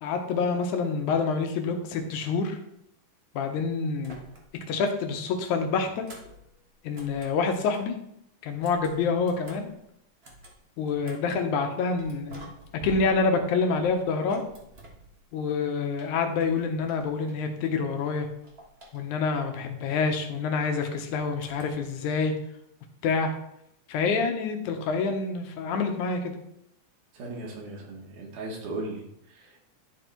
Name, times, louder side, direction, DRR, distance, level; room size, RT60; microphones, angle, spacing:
voice 1, 0.0-2.6 3.3-4.2 4.7-6.1 6.8-8.0 8.4-9.7 10.8-12.5 12.8-14.4 15.3-18.3 18.9-22.3 23.0-23.3 23.9-26.3, left 4 dB, 75° left, 5 dB, 2.3 m, -27 dB
sound 1, 4.0-4.7 5.0-8.0 8.5-11.4 12.0-15.5 15.9-17.7 18.0-19.4 21.4-22.0, right 1 dB, 60° right, 0.6 m, -49 dB
voice 2, 27.1-29.7, right 2 dB, 80° right, -1 dB, 3.1 m, -37 dB
11.5 x 3.9 x 4.5 m, 0.77 s
omnidirectional pair, 3.6 m